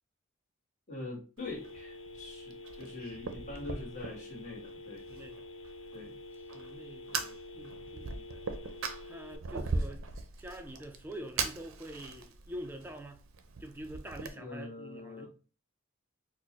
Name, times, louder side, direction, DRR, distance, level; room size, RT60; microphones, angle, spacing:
voice 1, 0.9-5.0 5.9-6.2 14.3-15.3, left 2 dB, 35° left, 1.3 m, -43 dB
Telephone, 1.4-9.4, left 3 dB, 70° left, 0.5 m, -48 dB
Fire, 1.4-14.3, right 4 dB, 75° right, 0.5 m, -40 dB
voice 2, 5.1-5.4 6.5-8.4 9.1-10.1 10.4-13.2 13.6-15.3, right 1 dB, 10° right, 0.4 m, -46 dB
4.4 x 2.0 x 2.9 m
head